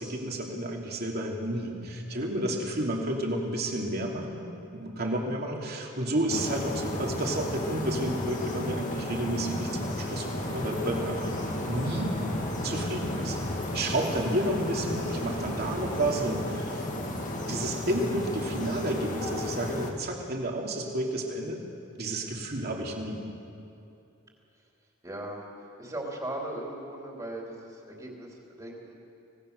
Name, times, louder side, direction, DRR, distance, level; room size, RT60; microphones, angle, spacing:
voice 1, 0.0-4.4 4.7-11.3 11.7-12.1 12.6-13.4 13.7-16.8 17.5-21.6 22.0-23.2, right 1 dB, 50° right, 0 dB, 3.0 m, -31 dB
sound 1, 6.3-19.9, left 1 dB, 40° left, 2.1 m, -33 dB
sound 2, 10.3-17.1, right 1 dB, 75° right, 1.8 m, -42 dB
voice 2, 25.0-25.4 25.8-28.9, right 1 dB, 20° right, -2 dB, 3.2 m, -39 dB
25.0 x 18.5 x 6.7 m, 2.7 s
head